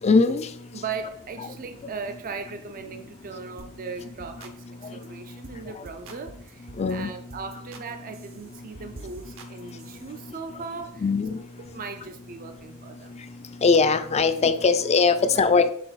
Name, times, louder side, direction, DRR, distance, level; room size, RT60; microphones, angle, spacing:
voice 1, 0.0-0.5 4.8-5.4 5.8-5.9 6.8-7.2 8.8-8.9 11.0-11.4 13.1-13.3 13.6-15.7, left 4 dB, 30° left, 10 dB, 0.4 m, -21 dB
voice 2, 0.7-11.0 11.7-13.2 15.2-15.4, right 5 dB, 40° right, 7 dB, 0.4 m, -38 dB
sound 1, 3.6-3.7 4.0-4.6 4.8-5.1 5.4-5.6 5.9-6.9 7.3-7.9 8.1-10.2, right 3 dB, 65° right, 0.8 m, -46 dB
6.7 x 3.9 x 4.0 m, 0.66 s
head